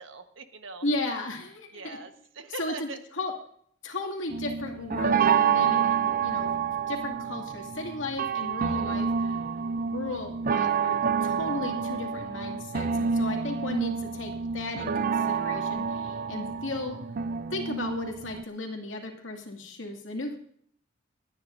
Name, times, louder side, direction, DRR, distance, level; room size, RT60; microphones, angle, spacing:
voice 1, 0.0-0.8 1.7-3.0, right 3 dB, 75° right, 7 dB, 1.3 m, -41 dB
voice 2, 0.8-2.0 2.6-2.9 3.2-3.3 3.8-6.5 6.9-9.4 9.9-17.0 17.5-20.4, left 2 dB, 80° left, 1 dB, 2.4 m, -35 dB
sound 1, 4.3-18.4, right 6 dB, 45° right, 0.5 m, -28 dB
29.5 x 9.9 x 2.7 m, 0.63 s
head